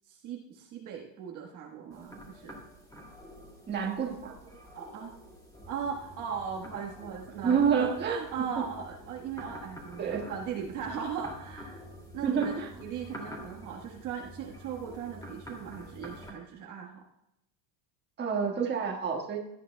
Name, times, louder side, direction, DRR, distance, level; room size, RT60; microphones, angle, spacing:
voice 1, 0.1-2.6 4.7-5.1 5.7-11.9 12.1-17.0, right 7 dB, 40° right, 0 dB, 1.4 m, -38 dB
sound 1, 1.9-16.3, equal, 5° left, 2.3 m, -47 dB
voice 2, 3.7-4.3 7.4-8.2 8.6-8.7 10.0-10.3 12.2-12.7 18.2-19.4, right 6 dB, 20° right, 0 dB, 1.5 m, -28 dB
17.0 x 11.5 x 2.2 m, 0.84 s
supercardioid pair, 150°, 49 cm